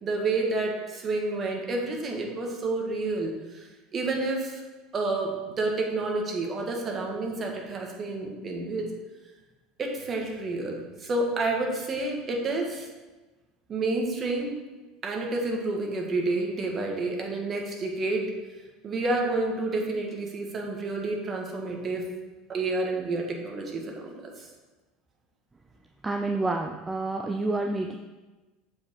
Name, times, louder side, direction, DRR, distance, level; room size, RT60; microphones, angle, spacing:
voice 1, 0.0-4.6 4.9-8.9 9.8-12.9 13.7-14.5 15.0-18.3 18.8-22.0 22.5-24.5, right 2 dB, 35° right, 0 dB, 1.5 m, -29 dB
voice 2, 26.0-27.9, right 2 dB, 20° right, 4 dB, 0.5 m, -28 dB
7.4 x 4.9 x 3.7 m, 1.2 s
hypercardioid pair, 90°, 0 cm